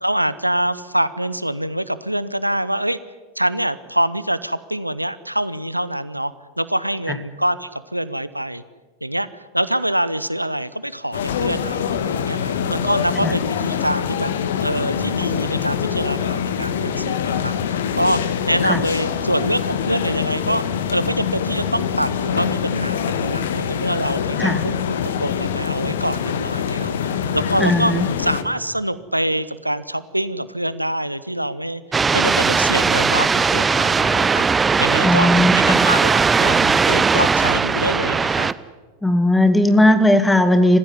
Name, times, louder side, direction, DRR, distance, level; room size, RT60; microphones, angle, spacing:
voice 1, 0.0-3.0 3.4-8.6 9.0-14.3 14.6-18.2 18.5-20.6 20.9-27.9 28.2-35.3 35.5-38.5, right 1 dB, 90° right, 16 dB, 0.8 m, -25 dB
sound 1, 11.1-28.4, left 8 dB, 60° left, 1.5 m, -24 dB
voice 2, 27.6-28.1 35.0-35.8 39.0-40.8, left 1 dB, 5° left, 10 dB, 2.2 m, -17 dB
sound 2, 31.9-38.5, right 5 dB, 15° right, 0.8 m, -18 dB
27.5 x 15.5 x 9.9 m, 1.4 s
figure-of-eight pair, 90°, 0 cm